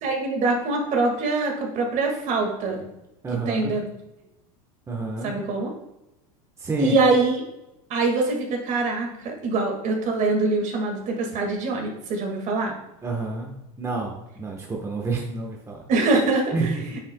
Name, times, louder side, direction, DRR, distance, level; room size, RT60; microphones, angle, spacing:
voice 1, 0.0-2.8 3.5-3.8 5.2-5.7 6.8-7.4 7.9-12.7 15.9-16.7, right 3 dB, 45° right, 2 dB, 2.0 m, -24 dB
voice 2, 3.2-3.8 4.9-5.4 6.6-7.0 13.0-13.5 13.8-15.8 16.5-17.0, right 3 dB, 15° right, 0 dB, 1.2 m, -29 dB
8.9 x 7.4 x 2.3 m, 0.90 s
supercardioid pair, 120°, 18 cm